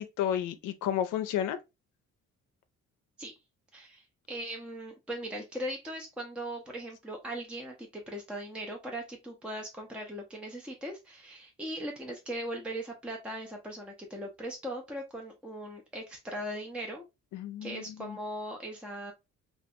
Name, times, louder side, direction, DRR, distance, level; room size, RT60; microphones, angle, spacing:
voice 1, 0.0-1.6 17.3-18.2, left 10 dB, 90° left, 0.5 m, -32 dB
voice 2, 3.7-17.0 17.6-19.1, right 1 dB, 5° right, 0.5 m, -39 dB
2.5 x 2.4 x 2.6 m
cardioid pair, 90°, 30 cm